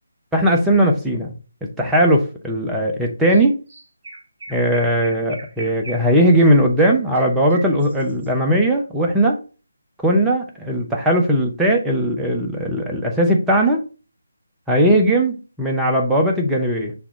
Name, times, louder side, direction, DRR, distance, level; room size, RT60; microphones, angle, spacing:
voice 1, 0.3-1.3 1.6-3.6 4.5-9.4 10.0-13.8 14.7-16.9, right 1 dB, 5° right, -1 dB, 0.6 m, -18 dB
Chirp tweet, 3.3-3.4 3.7-8.3, right 3 dB, 40° right, 1.7 m, -39 dB
5.9 x 2.3 x 3.8 m, 0.35 s
figure-of-eight pair, 150°, 0 cm